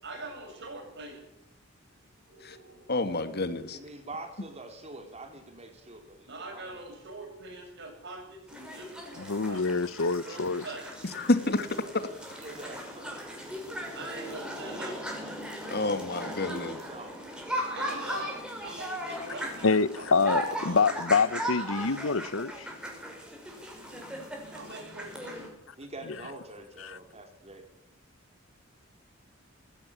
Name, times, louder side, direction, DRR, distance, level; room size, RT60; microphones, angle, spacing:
voice 1, 0.0-1.2 2.2-2.9 6.2-9.7 10.2-10.9 13.9-15.0 17.7-20.9 24.5-25.5, right 2 dB, 60° right, 7.9 m, -43 dB
voice 2, 2.9-3.8 11.1-11.7 15.6-16.8, left 2 dB, 55° left, 2.1 m, -28 dB
voice 3, 3.7-6.8 12.4-13.6 16.4-17.2 25.8-27.6, right 2 dB, 35° right, 4.5 m, -45 dB
sound 1, 8.5-25.5, equal, 5° right, 6.1 m, -38 dB
voice 4, 9.2-10.6 19.6-22.7 26.8-27.0, left 4 dB, 85° left, 0.9 m, -26 dB
20.0 x 16.5 x 8.7 m
head